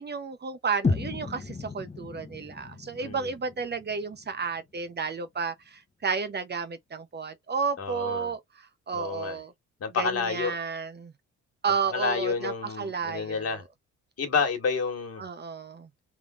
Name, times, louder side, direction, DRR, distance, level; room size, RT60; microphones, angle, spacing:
voice 1, 0.0-9.5 10.0-11.1 11.6-13.6 15.2-15.9, right 5 dB, 35° right, 0.8 m, -32 dB
sound 1, 0.8-4.8, left 4 dB, 20° left, 1.0 m, -34 dB
voice 2, 3.0-3.3 7.8-8.3 8.9-9.4 9.8-10.6 11.9-13.6 14.2-15.2, left 5 dB, 55° left, 1.8 m, -29 dB
3.5 x 3.3 x 2.4 m
cardioid pair, 90°, 30 cm